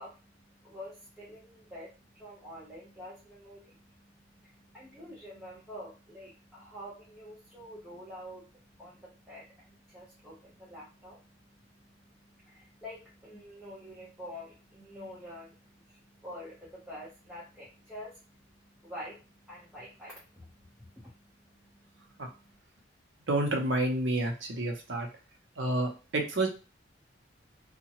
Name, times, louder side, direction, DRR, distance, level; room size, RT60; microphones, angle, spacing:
voice 1, 0.0-22.6, equal, 5° right, -8 dB, 0.7 m, -48 dB
voice 2, 23.3-25.1 25.6-26.5, right 1 dB, 70° right, 2 dB, 0.7 m, -29 dB
2.8 x 2.1 x 2.9 m, 0.33 s
head